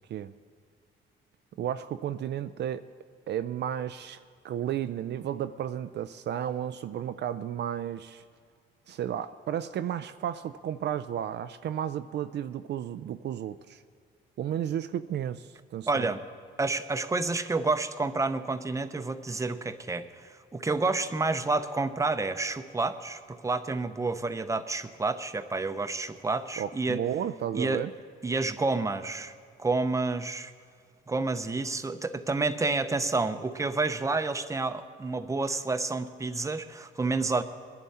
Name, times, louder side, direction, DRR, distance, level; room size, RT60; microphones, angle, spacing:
voice 1, 1.6-2.9 3.3-4.2 4.4-8.2 8.9-13.8 14.4-16.1 26.6-27.9, right 10 dB, 60° right, 11 dB, 0.4 m, -33 dB
voice 2, 15.9-16.2 16.6-27.0 27.5-27.8 28.2-29.3 29.6-30.5 31.1-37.4, right 3 dB, 15° right, 9 dB, 0.7 m, -29 dB
21.5 x 11.0 x 4.3 m, 2.1 s
cardioid pair, 90°, 20 cm